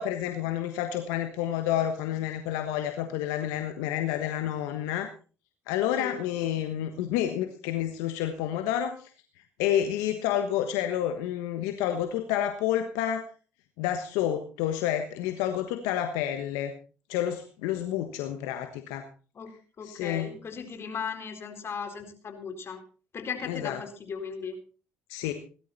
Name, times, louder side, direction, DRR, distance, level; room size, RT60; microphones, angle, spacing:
voice 1, 0.0-5.1 5.7-9.1 9.6-13.3 13.8-16.7 17.1-19.1 19.8-20.3 23.5-23.8 25.1-25.3, left 11 dB, 80° left, 7 dB, 1.3 m, -29 dB
voice 2, 19.3-22.8 23.1-24.6, left 6 dB, 45° left, 7 dB, 4.0 m, -37 dB
18.0 x 12.0 x 4.2 m, 0.38 s
hypercardioid pair, 65°, 6 cm